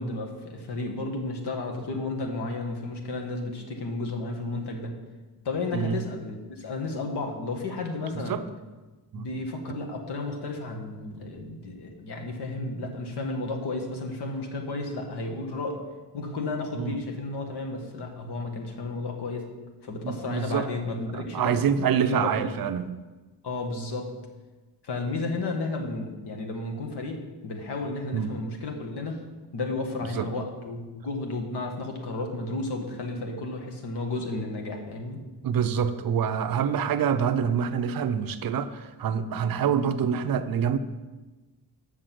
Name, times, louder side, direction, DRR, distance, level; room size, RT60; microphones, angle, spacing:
voice 1, 0.0-4.9 5.4-8.4 9.1-15.8 16.1-19.5 19.8-21.6 21.9-22.5 23.4-24.1 24.8-29.2 29.5-35.2, left 2 dB, 65° left, 2 dB, 1.6 m, -32 dB
voice 2, 20.0-20.7 21.1-22.9 28.1-28.3 30.1-30.3 35.4-40.8, right 7 dB, 55° right, 10 dB, 0.6 m, -26 dB
6.5 x 6.4 x 7.6 m, 1.2 s
cardioid pair, 135°, 42 cm